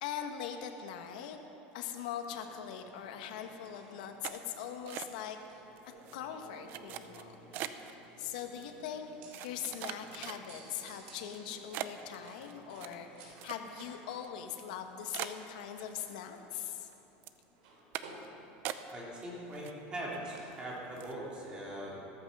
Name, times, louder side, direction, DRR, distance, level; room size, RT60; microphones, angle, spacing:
voice 1, 0.0-1.4 1.7-7.4 7.9-9.1 9.4-16.9, left 9 dB, 85° left, 5 dB, 1.4 m, -41 dB
sound 1, 2.3-21.2, right 1 dB, 80° right, 3.5 m, -57 dB
sound 2, 4.2-5.5 5.8-6.2 6.7-7.9 8.6-8.7 9.3-10.7 11.2-11.4 11.7-13.9 14.2-14.3 14.7-14.8 15.1-16.2 16.5-16.9 17.2-17.4 17.9-18.3 18.6-19.2 19.5-20.2 20.5-20.6 21.0-21.2, right 12 dB, 50° right, 0.7 m, -42 dB
voice 2, 18.9-22.0, right 1 dB, 20° right, -5 dB, 3.6 m, -41 dB
15.0 x 14.0 x 5.5 m, 2.9 s
supercardioid pair, 155°, 4 cm